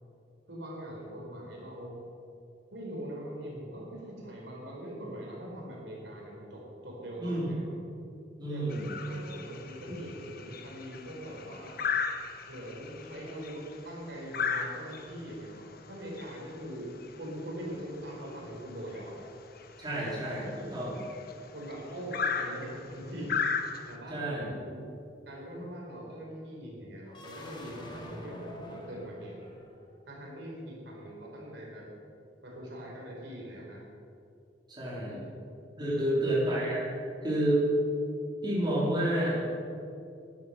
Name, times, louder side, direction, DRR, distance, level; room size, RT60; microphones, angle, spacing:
voice 1, 0.5-2.0 2.7-7.6 8.5-11.8 12.5-16.9 17.1-19.1 21.5-23.3 23.9-24.9 25.2-29.3 30.1-31.8 32.4-33.8 35.0-35.2 35.9-36.2, equal, 70° right, -3 dB, 4.1 m, -42 dB
voice 2, 7.2-7.5 8.4-8.9 19.8-21.0 24.1-24.5 34.7-35.2 35.8-36.9 37.2-37.7 38.4-39.3, right 1 dB, 25° right, -6 dB, 3.6 m, -29 dB
sound 1, 8.7-24.0, left 6 dB, 55° left, 1.0 m, -37 dB
sound 2, 27.0-30.0, left 1 dB, 25° left, 1.9 m, -47 dB
13.5 x 12.0 x 5.6 m, 2.6 s
head